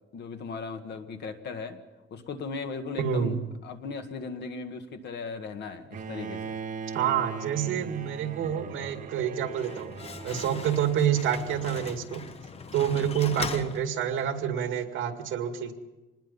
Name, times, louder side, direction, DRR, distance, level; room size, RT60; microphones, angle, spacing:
voice 1, 0.1-1.8 2.1-6.6, left 4 dB, 55° left, 7 dB, 1.7 m, -37 dB
voice 2, 3.0-3.4 6.9-9.9 10.2-12.2 12.7-15.7, right 9 dB, 70° right, 6 dB, 2.3 m, -28 dB
Bowed string instrument, 5.9-12.0, right 5 dB, 40° right, 1.4 m, -40 dB
Slam, 9.3-14.5, left 5 dB, 30° left, 0.9 m, -40 dB
25.5 x 20.0 x 5.5 m, 1.1 s
cardioid pair, 175°, 21 cm